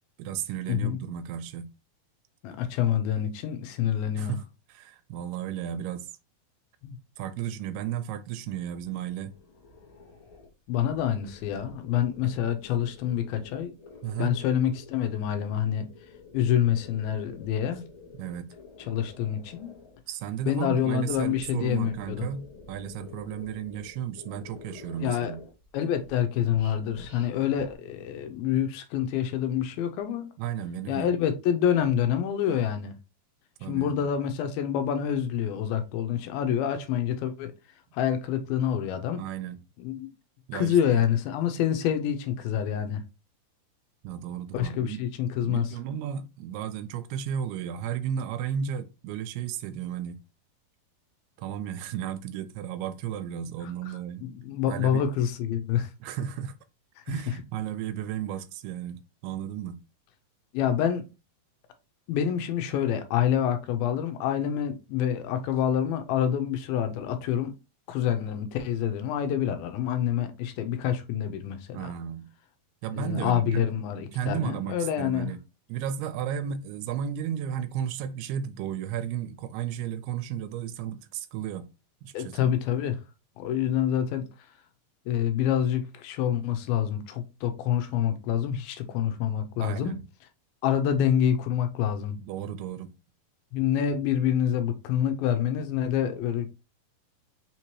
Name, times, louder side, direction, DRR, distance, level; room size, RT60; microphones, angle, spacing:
voice 1, 0.2-1.7 4.1-4.4 4.7-6.1 7.2-9.3 14.0-14.4 18.1-18.5 20.1-25.4 30.4-31.2 33.6-34.0 39.2-39.6 40.5-41.0 44.0-45.0 45.4-50.2 51.4-54.3 54.7-55.1 56.0-56.5 57.1-59.8 71.7-72.3 72.8-73.7 74.1-75.4 75.7-81.7 82.0-82.5 89.6-90.0 92.2-92.9, right 9 dB, 90° right, 2.6 m, -34 dB
voice 2, 2.4-4.4 6.8-7.0 10.7-13.7 14.2-15.9 16.3-17.8 18.9-19.8 20.5-22.3 25.0-25.3 25.7-30.3 30.9-32.9 33.7-37.5 37.9-39.2 39.8-40.1 40.5-43.0 44.5-45.7 54.2-55.9 60.5-61.0 62.1-67.5 67.9-71.9 72.9-75.3 82.1-83.0 83.4-84.3 85.1-90.0 90.6-92.2 93.5-96.5, left 9 dB, 85° left, 2.5 m, -27 dB
sound 1, 8.7-15.2 15.7-20.0 20.6-25.7 26.0-27.8, left 4 dB, 70° left, 1.1 m, -49 dB
5.8 x 2.8 x 3.0 m
omnidirectional pair, 4.4 m